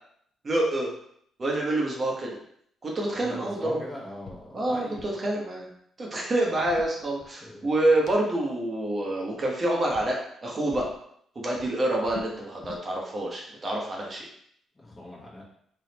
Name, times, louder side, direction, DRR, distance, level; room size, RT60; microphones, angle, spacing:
voice 1, 0.4-0.9 1.4-2.4 2.8-3.8 4.5-5.7 6.0-10.8 11.3-14.3, right 1 dB, 35° right, -2 dB, 1.1 m, -27 dB
voice 2, 3.1-5.3 6.5-6.6 7.4-7.7 14.8-15.4, left 1 dB, 25° left, -6 dB, 1.2 m, -41 dB
sound 1, 4.2-4.5 4.7-5.2 6.4-7.6 8.1-8.2 9.2-9.6 9.9-10.1 10.7-11.0 11.4-12.9, left 5 dB, 60° left, 0.5 m, -44 dB
3.6 x 3.5 x 2.9 m, 0.69 s
cardioid pair, 90°, 0 cm